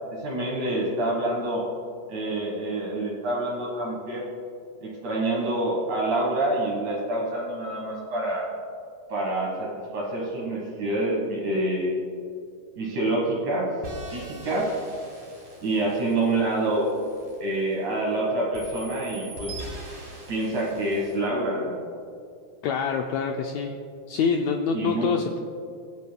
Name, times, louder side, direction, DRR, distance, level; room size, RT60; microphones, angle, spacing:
voice 1, 0.1-1.6 2.1-4.2 4.8-8.5 9.1-11.9 12.8-13.7 14.1-14.7 15.6-16.9 17.4-19.6 20.3-21.8 24.7-25.1, right 1 dB, 65° right, -3 dB, 2.8 m, -27 dB
sound 1, 13.8-18.1 18.5-21.2, right 1 dB, 50° right, 3.7 m, -43 dB
voice 2, 22.6-23.7 24.1-25.4, left 6 dB, 85° left, 3 dB, 1.5 m, -25 dB
23.0 x 8.5 x 2.2 m, 2.4 s
omnidirectional pair, 3.8 m